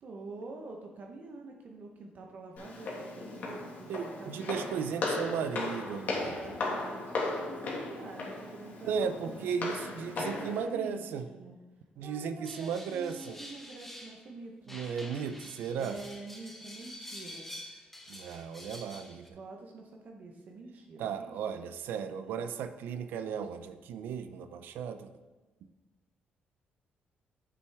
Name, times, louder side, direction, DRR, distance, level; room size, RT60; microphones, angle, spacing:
voice 1, 0.0-4.6 5.9-9.8 10.3-11.6 12.0-14.8 15.8-17.5 19.3-21.3 22.2-22.5, right 3 dB, 55° right, 2 dB, 0.8 m, -46 dB
Walk footsteps, 2.6-10.6, left 3 dB, 55° left, 1.7 m, -36 dB
voice 2, 3.9-6.6 8.8-11.3 12.0-13.4 14.7-16.0 18.1-19.4 21.0-25.1, right 7 dB, 85° right, 10 dB, 0.4 m, -35 dB
sound 1, 12.5-14.3 14.7-19.3, left 1 dB, 5° left, 0.8 m, -47 dB
7.7 x 6.1 x 3.4 m, 1.2 s
cardioid pair, 120°, 3 cm